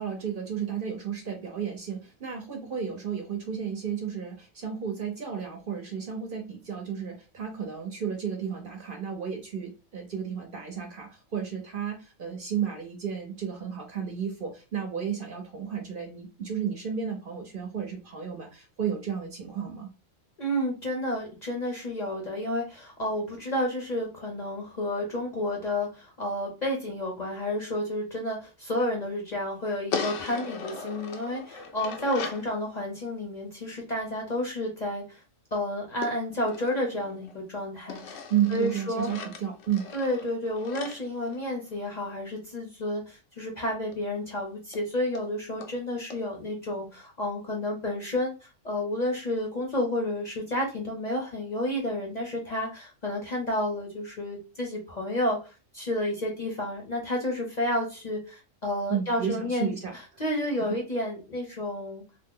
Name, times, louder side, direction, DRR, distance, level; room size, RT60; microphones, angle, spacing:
voice 1, 0.0-19.9 38.3-39.9 58.9-59.9, right 8 dB, 50° right, 1 dB, 0.8 m, -32 dB
voice 2, 20.4-35.2 35.5-38.2 38.5-39.1 39.9-48.3 48.6-59.7 60.2-62.0, left 1 dB, 40° left, -1 dB, 0.7 m, -31 dB
sound 1, 29.9-32.5 36.0-37.4 37.9-42.0 43.9-44.0 44.3-44.4 44.7-44.8 45.1-45.3 45.6-45.7 46.1-46.2, left 5 dB, 75° left, 1.0 m, -38 dB
2.8 x 2.1 x 3.6 m, 0.32 s
omnidirectional pair, 1.3 m